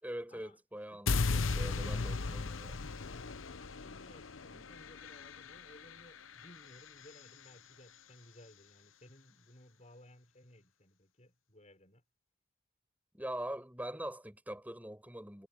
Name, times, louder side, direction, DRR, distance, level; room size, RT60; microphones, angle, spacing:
voice 1, 0.0-2.7 4.5-4.6 13.1-15.5, right 1 dB, 10° right, 6.8 m, -43 dB
voice 2, 0.9-12.0, left 1 dB, 35° left, 6.8 m, -59 dB
sound 1, 1.1-7.2, left 4 dB, 80° left, 0.9 m, -37 dB
head